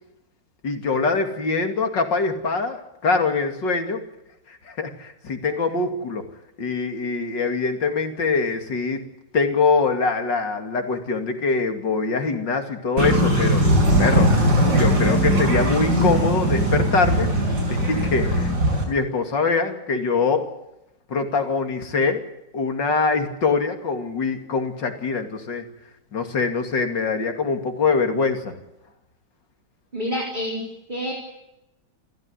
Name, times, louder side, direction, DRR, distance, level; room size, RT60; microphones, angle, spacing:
voice 1, 0.6-4.0 4.5-6.2 6.6-9.0 9.3-13.6 14.0-14.3 14.7-17.3 17.7-18.5 18.9-20.5 21.1-22.2 22.5-25.6 26.1-28.5, left 4 dB, 70° left, 6 dB, 3.2 m, -23 dB
sound 1, 13.0-18.8, right 1 dB, 60° right, 6.6 m, -19 dB
voice 2, 29.9-31.1, equal, 25° right, -1 dB, 3.8 m, -28 dB
28.5 x 15.5 x 9.8 m, 0.90 s
omnidirectional pair, 2.0 m